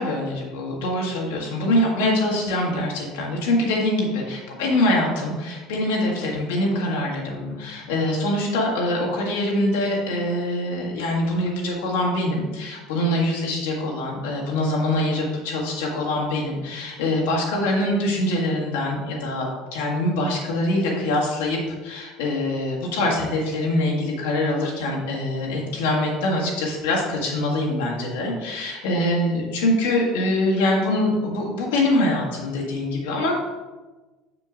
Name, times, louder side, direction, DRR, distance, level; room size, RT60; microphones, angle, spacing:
voice 1, 0.0-33.4, left 1 dB, 70° left, -2 dB, 1.6 m, -24 dB
6.7 x 6.7 x 2.5 m, 1.2 s
figure-of-eight pair, 65°, 0 cm